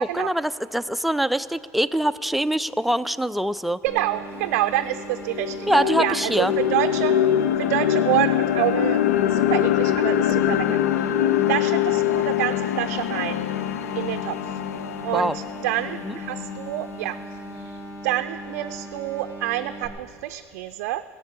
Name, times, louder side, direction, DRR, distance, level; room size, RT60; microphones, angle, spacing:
voice 1, 0.1-3.8 5.7-6.5 15.1-15.3 16.0-16.1, right 1 dB, ahead, 12 dB, 0.4 m, -23 dB
voice 2, 3.8-7.1 7.6-9.0 9.3-11.2 11.5-13.5 13.9-14.6 15.0-17.2 17.5-21.0, right 14 dB, 75° right, 8 dB, 0.4 m, -27 dB
sound 1, 3.9-19.9, right 1 dB, 40° left, 3.7 m, -38 dB
sound 2, 4.4-4.5 4.9-16.9, left 11 dB, 90° left, 0.4 m, -24 dB
16.5 x 6.8 x 8.2 m, 2.3 s
hypercardioid pair, 80°, 8 cm